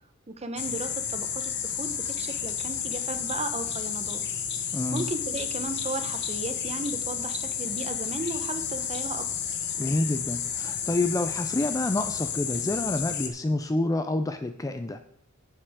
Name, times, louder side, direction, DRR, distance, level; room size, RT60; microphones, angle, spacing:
voice 1, 0.3-4.2 4.9-9.3, right 2 dB, 30° right, 8 dB, 0.8 m, -35 dB
sound 1, 0.6-13.3, left 8 dB, 50° left, 1.0 m, -31 dB
voice 2, 4.7-5.1 9.8-15.0, left 2 dB, 15° left, 9 dB, 0.4 m, -28 dB
11.5 x 7.6 x 3.6 m, 0.67 s
head